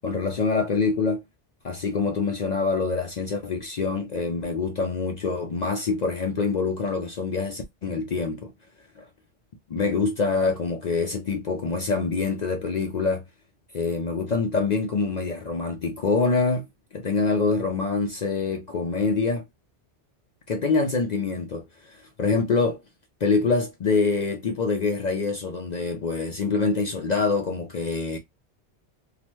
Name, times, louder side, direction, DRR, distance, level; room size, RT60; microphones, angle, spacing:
voice 1, 0.0-1.2 1.6-8.5 9.0-9.1 9.7-13.2 13.7-16.7 16.9-19.4 20.5-22.8 23.2-28.2, left 4 dB, 60° left, 0.4 m, -25 dB
2.9 x 2.0 x 2.9 m
omnidirectional pair, 1.2 m